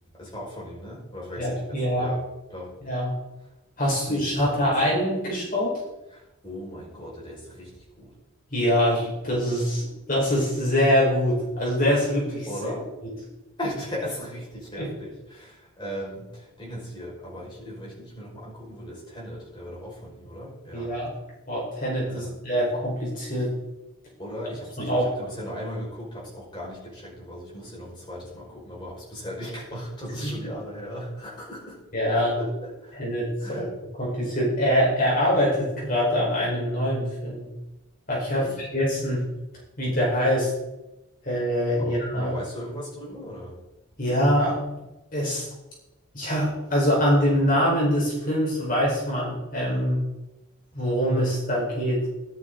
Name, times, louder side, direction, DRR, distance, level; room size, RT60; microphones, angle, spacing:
voice 1, 0.1-2.2 2.5-2.7 4.1-4.7 6.1-8.1 12.5-12.9 13.6-20.9 22.0-22.3 24.2-31.8 32.4-33.0 33.4-33.7 38.3-38.6 41.8-43.6, equal, 20° left, -5 dB, 5.1 m, -37 dB
voice 2, 1.4-2.1 2.8-3.1 3.8-5.7 8.5-12.5 14.8-14.9 20.7-21.1 21.5-23.5 24.8-25.0 30.2-30.3 31.9-32.4 33.0-33.7 34.0-37.5 38.1-39.2 39.8-40.5 41.2-42.4 44.0-44.6 45.1-45.5 46.1-50.0 50.7-52.1, equal, 40° left, -5 dB, 4.6 m, -24 dB
13.5 x 11.5 x 3.9 m, 0.99 s
head